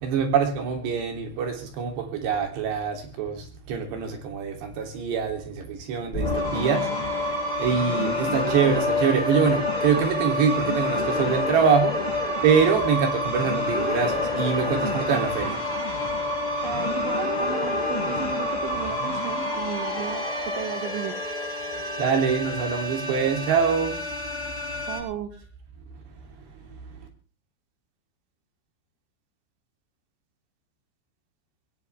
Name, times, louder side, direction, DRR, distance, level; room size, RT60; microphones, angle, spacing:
voice 1, 0.0-6.9 7.6-12.0 12.4-15.6 22.0-24.0, right 6 dB, 70° right, 3 dB, 5.2 m, -24 dB
sound 1, 6.1-25.0, left 2 dB, 10° left, 7.5 m, -28 dB
voice 2, 16.6-21.2 24.9-25.3, right 9 dB, 90° right, 7 dB, 3.7 m, -34 dB
20.5 x 17.5 x 3.5 m, 0.35 s
omnidirectional pair, 5.2 m